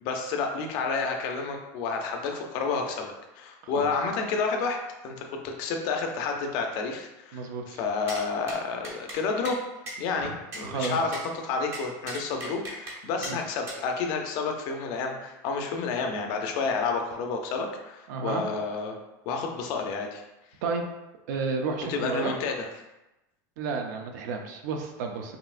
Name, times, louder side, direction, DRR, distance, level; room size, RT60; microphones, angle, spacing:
voice 1, 0.0-9.6 10.0-19.0 19.3-20.2 21.9-22.6, left 4 dB, 45° left, 3 dB, 0.5 m, -30 dB
voice 2, 7.3-7.8 10.2-10.3 10.6-11.0 13.3-13.4 18.1-18.4 20.6-20.8 21.3-22.3 23.6-25.4, right 4 dB, 70° right, 4 dB, 0.6 m, -31 dB
sound 1, 8.1-8.2 8.5-8.6 8.8-9.2 9.4-9.6 9.9-10.0 10.5-11.3 11.7-13.0 13.2-13.3 13.7-13.8, right 1 dB, 30° right, 0.7 m, -38 dB
5.5 x 2.8 x 2.4 m, 0.99 s
supercardioid pair, 175°, 10 cm